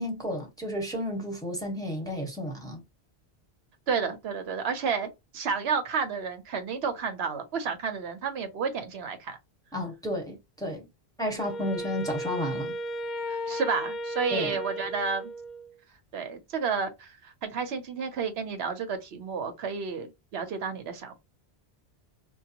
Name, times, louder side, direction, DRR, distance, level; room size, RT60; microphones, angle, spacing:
voice 1, 0.0-2.8 9.7-10.9 11.2-12.7 14.3-14.6, left 1 dB, 5° left, 1.1 m, -32 dB
voice 2, 3.9-9.4 13.3-15.3 16.1-21.1, right 5 dB, 75° right, 1.0 m, -31 dB
Wind instrument woodwind instrument, 11.4-15.8, equal, 55° left, 0.6 m, -35 dB
4.5 x 2.2 x 2.8 m
omnidirectional pair, 1.1 m